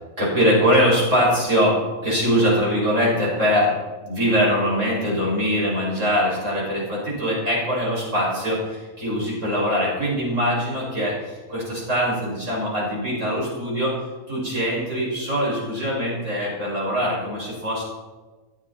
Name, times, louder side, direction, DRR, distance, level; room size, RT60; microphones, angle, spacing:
voice 1, 0.2-3.7 4.0-13.9 14.3-17.8, equal, 55° right, -5 dB, 6.6 m, -22 dB
21.5 x 12.5 x 4.3 m, 1.3 s
omnidirectional pair, 1.5 m